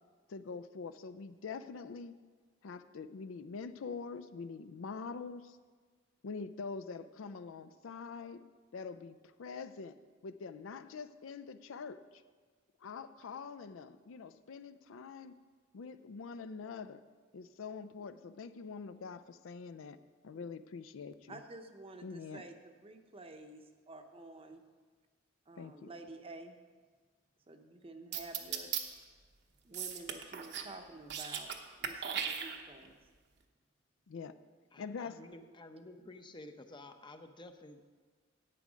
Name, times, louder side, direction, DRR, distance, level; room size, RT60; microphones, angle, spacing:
voice 1, 0.3-2.2 2.6-5.6 6.2-8.5 8.7-10.0 10.2-12.2 12.8-15.4 15.7-17.0 17.3-20.0 20.2-21.4 22.0-22.5 25.6-25.9 34.1-34.4 34.8-35.2, left 5 dB, 75° left, 12 dB, 0.4 m, -45 dB
voice 2, 21.3-24.6 25.5-26.6 27.5-28.7 29.6-31.5 31.8-33.0, right 2 dB, 30° right, 6 dB, 0.8 m, -50 dB
sound 1, 28.1-28.8 29.7-30.7 31.0-31.6 31.8-32.9, right 8 dB, 60° right, 0.9 m, -37 dB
voice 3, 34.7-37.9, left 2 dB, 25° left, 7 dB, 0.7 m, -52 dB
11.0 x 8.4 x 5.1 m, 1.5 s
head